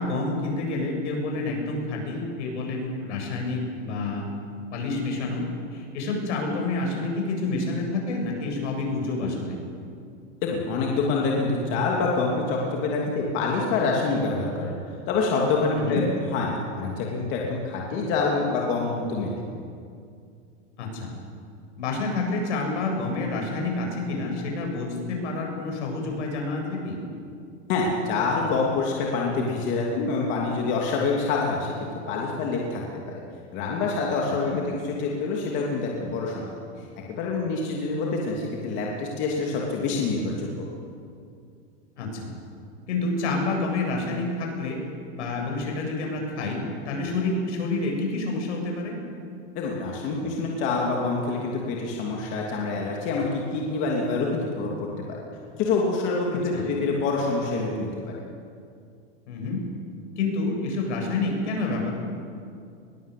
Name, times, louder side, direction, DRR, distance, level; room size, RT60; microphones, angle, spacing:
voice 1, 0.0-4.2 4.7-9.6 15.7-16.0 20.8-21.1 21.8-27.0 34.5-34.6 42.0-42.3 42.9-44.8 45.1-49.0 56.5-56.7 59.3-59.6 60.2-61.9, left 3 dB, 70° left, 1 dB, 8.0 m, -28 dB
voice 2, 10.4-14.7 15.1-19.4 27.7-31.8 32.1-33.2 33.5-36.5 37.2-40.7 49.5-54.7 55.1-55.2 55.6-57.9, left 3 dB, 30° left, -2 dB, 2.8 m, -26 dB
21.5 x 20.5 x 8.5 m, 2.4 s
supercardioid pair, 170°, 36 cm